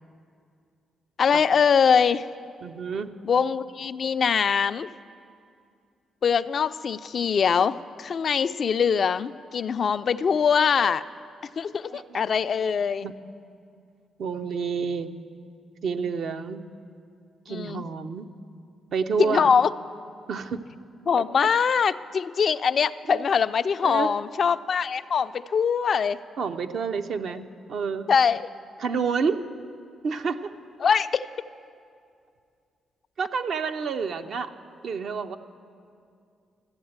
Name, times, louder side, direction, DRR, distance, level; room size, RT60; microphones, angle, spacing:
voice 1, 1.2-2.2 3.3-4.9 6.2-11.0 11.6-13.1 17.5-17.8 19.2-19.7 21.1-26.2 28.1-28.4 30.8-31.2, left 6 dB, 55° left, 12 dB, 0.3 m, -23 dB
voice 2, 2.6-3.1 11.8-12.2 13.0-13.1 14.2-15.1 15.8-16.6 17.5-18.3 18.9-19.5 20.3-20.6 23.1-23.3 23.8-24.1 26.4-28.1 28.8-29.4 30.0-30.5 33.2-34.5 34.8-35.4, right 5 dB, 65° right, 7 dB, 0.6 m, -29 dB
13.0 x 8.0 x 8.0 m, 2.4 s
hypercardioid pair, 45°, 0 cm